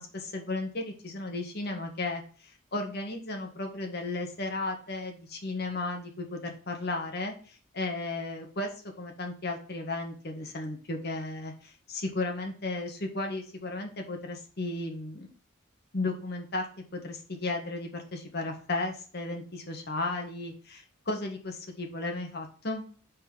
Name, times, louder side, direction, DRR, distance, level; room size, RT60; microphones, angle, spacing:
voice 1, 0.0-8.7 9.0-15.3 15.9-16.7 16.9-22.8, left 2 dB, 50° left, 3 dB, 1.6 m, -34 dB
5.5 x 4.4 x 5.5 m, 0.41 s
head